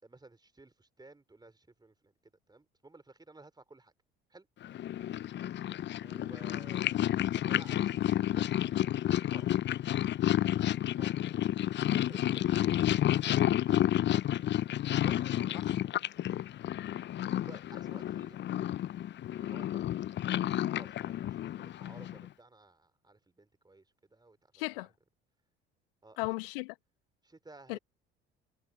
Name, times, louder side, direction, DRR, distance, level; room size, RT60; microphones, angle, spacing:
voice 1, 0.0-2.1 2.5-3.9 4.3-4.5 6.0-7.1 7.4-8.5 9.2-9.6 9.9-11.5 11.9-13.1 13.5-14.2 15.0-15.8 17.4-18.4 19.4-20.0 20.7-24.9 26.0-26.3 27.2-27.8, right 2 dB, 15° right, 4.2 m, -55 dB
Purr, 4.6-22.3, left 12 dB, 40° left, 0.8 m, -31 dB
voice 2, 24.5-24.9 26.2-26.7 27.7-27.8, left 27 dB, 65° left, 1.6 m, -35 dB
figure-of-eight pair, 60°, 30 cm